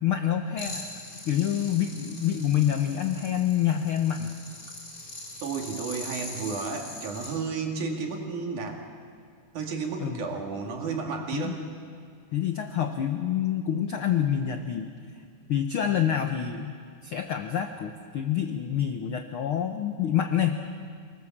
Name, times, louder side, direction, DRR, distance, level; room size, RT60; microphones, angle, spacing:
voice 1, 0.0-0.9 1.3-4.3 10.0-10.2 11.3-11.5 12.3-14.9 15.5-16.7 17.0-20.6, left 10 dB, 70° left, 6 dB, 1.2 m, -27 dB
sound 1, 0.6-7.4, left 2 dB, 25° left, 4.4 m, -41 dB
voice 2, 5.4-8.8 9.5-11.7, right 5 dB, 70° right, 2 dB, 3.6 m, -32 dB
24.5 x 20.0 x 7.3 m, 2.2 s
omnidirectional pair, 3.7 m